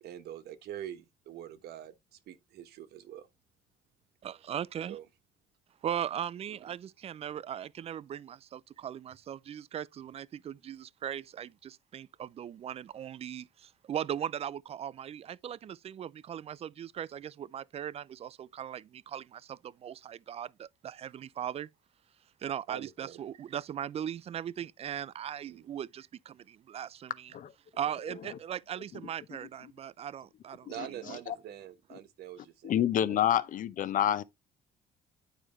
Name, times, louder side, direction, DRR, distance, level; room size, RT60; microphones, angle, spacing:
voice 1, 0.0-3.3 4.9-5.0 22.7-23.2 25.4-25.7 30.7-32.8 33.1-33.2, right 11 dB, 70° right, 1.1 m, -44 dB
voice 2, 4.2-5.0 5.8-21.7 22.4-27.3 27.7-31.2, right 9 dB, 35° right, 0.4 m, -39 dB
voice 3, 30.8-31.3 32.6-34.2, left 10 dB, 50° left, 0.7 m, -28 dB
9.0 x 5.0 x 3.1 m
cardioid pair, 110°, 17 cm